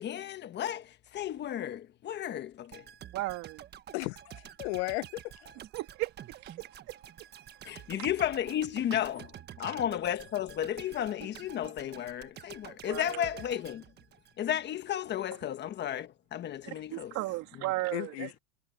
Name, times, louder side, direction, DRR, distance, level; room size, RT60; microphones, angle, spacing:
voice 1, 0.0-2.8 7.6-9.3 9.6-13.8 14.4-17.1, left 10 dB, 30° left, 1.3 m, -33 dB
sound 1, 2.7-14.7 15.0-15.2, right 10 dB, 30° right, 1.4 m, -49 dB
voice 2, 3.1-3.6 5.7-6.1 6.4-6.9 8.0-8.1 8.9-9.0 9.6-9.7 12.9-13.3 16.7-18.3, right 19 dB, 50° right, 2.4 m, -36 dB
voice 3, 3.9-5.5 17.9-18.4, left 24 dB, 65° left, 1.0 m, -35 dB
supercardioid pair, 140°, 35 cm